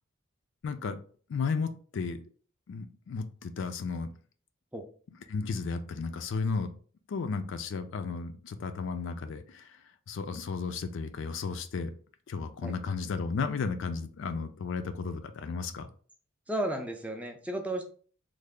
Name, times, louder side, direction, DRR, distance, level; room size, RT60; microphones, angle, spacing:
voice 1, 0.6-1.0 1.3-2.2 2.7-4.1 5.3-6.7 7.1-9.8 10.1-11.9 12.3-15.9, left 4 dB, 65° left, 9 dB, 0.4 m, -34 dB
voice 2, 16.5-17.9, right 1 dB, 5° right, 4 dB, 0.3 m, -33 dB
3.2 x 2.0 x 3.6 m, 0.43 s
head